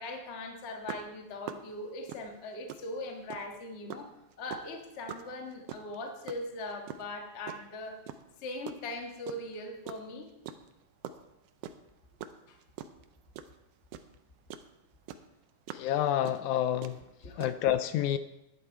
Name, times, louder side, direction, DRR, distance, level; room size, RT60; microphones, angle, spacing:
voice 1, 0.0-4.1 4.4-8.0 8.4-10.3 12.5-12.6 17.2-17.4, left 2 dB, 40° left, 3 dB, 0.9 m, -40 dB
sound 1, 0.9-3.6 3.9-7.7 8.1-9.6 9.9-14.7 15.0-17.5, right 9 dB, 90° right, 1.3 m, -43 dB
voice 2, 15.7-17.0 17.4-18.2, left 11 dB, 80° left, 12 dB, 1.9 m, -28 dB
11.0 x 10.5 x 4.5 m, 0.92 s
omnidirectional pair, 3.6 m